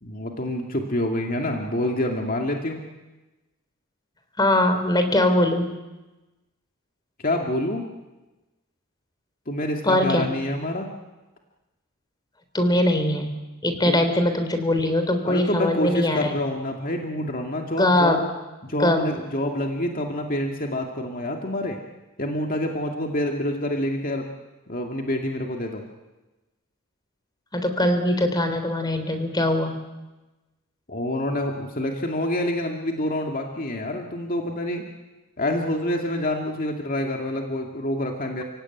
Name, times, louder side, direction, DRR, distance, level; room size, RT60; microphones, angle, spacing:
voice 1, 0.0-2.8 7.2-7.9 9.5-10.9 13.9-14.1 15.3-18.3 18.6-21.8 22.2-24.3 24.7-25.8 30.9-34.9 35.4-38.4, left 1 dB, 40° left, 2 dB, 2.3 m, -27 dB
voice 2, 4.4-5.7 9.8-10.3 12.5-13.3 13.6-16.3 17.8-18.2 18.8-19.0 27.5-29.8, left 1 dB, 20° left, 7 dB, 3.3 m, -21 dB
30.0 x 17.5 x 9.3 m, 1.1 s
head